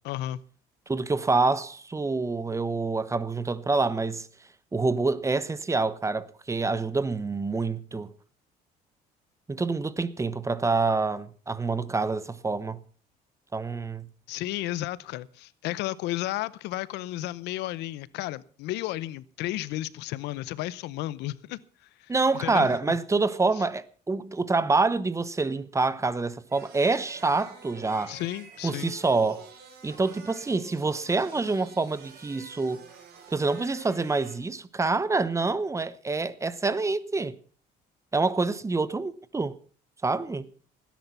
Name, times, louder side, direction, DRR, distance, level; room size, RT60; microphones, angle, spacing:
voice 1, 0.0-0.4 14.3-21.6 22.0-22.1 22.4-22.8 28.1-28.9, left 15 dB, 85° left, 0.7 m, -33 dB
voice 2, 0.9-4.3 4.7-8.1 9.5-12.8 13.5-14.1 22.1-28.1 28.6-29.5 29.8-32.8 33.3-37.3 38.1-39.5 40.0-40.4, right 3 dB, 15° right, 0.9 m, -26 dB
sound 1, 26.5-34.3, right 6 dB, 70° right, 5.7 m, -48 dB
17.5 x 10.5 x 5.7 m
cardioid pair, 110°, 17 cm